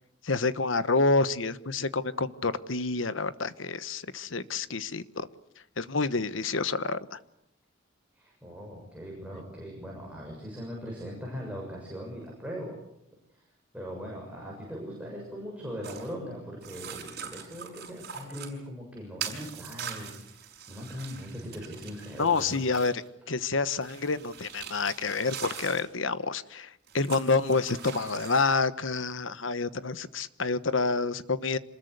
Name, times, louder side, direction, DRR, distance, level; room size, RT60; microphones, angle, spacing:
voice 1, 0.2-5.3 5.8-7.2 22.2-31.6, left 3 dB, 75° left, 14 dB, 1.2 m, -28 dB
voice 2, 8.1-12.7 13.3-13.4 13.7-22.6, equal, 5° right, -2 dB, 6.8 m, -40 dB
sound 1, 15.8-16.1 16.6-18.5 19.2-23.1 23.8-25.9 26.9-28.5, right 7 dB, 55° right, 5.8 m, -42 dB
27.0 x 21.0 x 8.1 m, 0.79 s
head